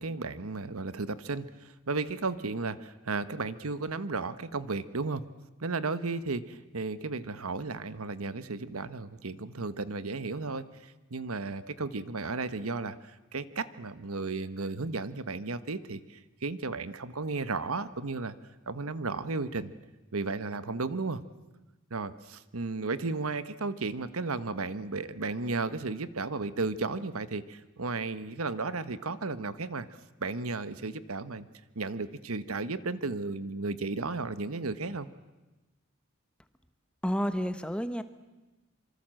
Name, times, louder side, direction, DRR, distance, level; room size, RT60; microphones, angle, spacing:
voice 1, 0.0-5.2 5.6-18.3 18.7-19.7 20.1-21.2 21.9-29.9 30.2-31.5 31.7-35.1, right 3 dB, 90° right, 14 dB, 1.2 m, -34 dB
voice 2, 37.0-38.0, equal, 5° left, 10 dB, 1.1 m, -30 dB
26.0 x 24.5 x 7.7 m, 1.1 s
head